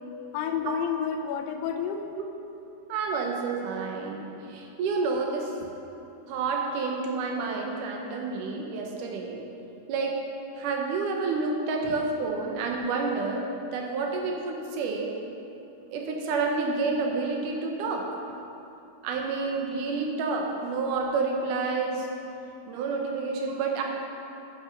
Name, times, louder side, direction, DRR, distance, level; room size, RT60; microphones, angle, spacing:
voice 1, 0.3-2.1 5.6-5.7 11.8-12.0 18.3-18.4, left 8 dB, 85° left, 5 dB, 2.7 m, -31 dB
voice 2, 2.9-5.5 6.3-9.4 9.9-10.2 10.6-13.5 13.7-15.1 15.9-18.1 19.0-22.1 22.7-23.8, right 4 dB, 65° right, 1 dB, 2.2 m, -29 dB
10.0 x 8.1 x 5.3 m, 2.9 s
omnidirectional pair, 4.6 m